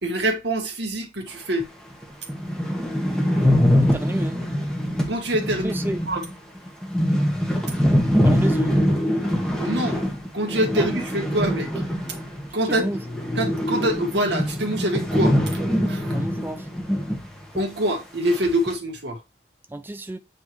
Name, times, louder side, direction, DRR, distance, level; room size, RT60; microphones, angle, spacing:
voice 1, 0.0-1.7 5.1-5.8 6.1-6.3 9.6-10.0 10.3-11.7 12.5-12.9 13.4-15.4 15.9-16.1 17.6-19.2, right 1 dB, 85° right, 1.8 m, -25 dB
sound 1, 1.6-1.7 2.0-2.1 2.3-12.5 12.8-17.3 17.5-17.6 18.3-18.7, equal, 5° left, 1.4 m, -23 dB
voice 2, 3.8-4.4 5.6-6.0 8.2-8.8 10.8-10.9 12.7-13.0 16.1-16.7 19.7-20.2, right 1 dB, 10° right, 0.4 m, -31 dB
8.3 x 3.8 x 3.2 m
head